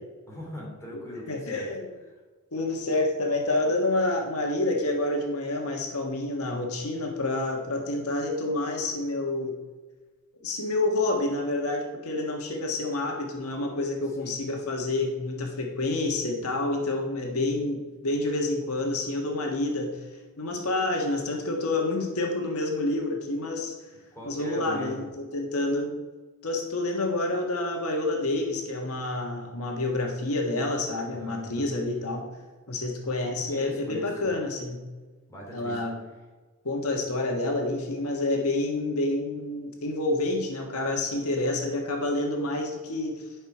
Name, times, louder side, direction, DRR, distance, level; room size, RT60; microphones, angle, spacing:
voice 1, 0.3-1.7 14.2-14.4 24.1-25.0 31.1-31.7 33.5-34.3 35.3-35.8, equal, 15° left, -4 dB, 2.8 m, -40 dB
voice 2, 1.3-1.8 2.5-9.5 10.4-20.1 20.4-23.8 24.2-25.9 26.4-32.3 32.7-34.8 35.5-35.9 36.6-43.3, left 2 dB, 75° left, 1 dB, 1.4 m, -28 dB
11.5 x 5.9 x 4.8 m, 1.3 s
head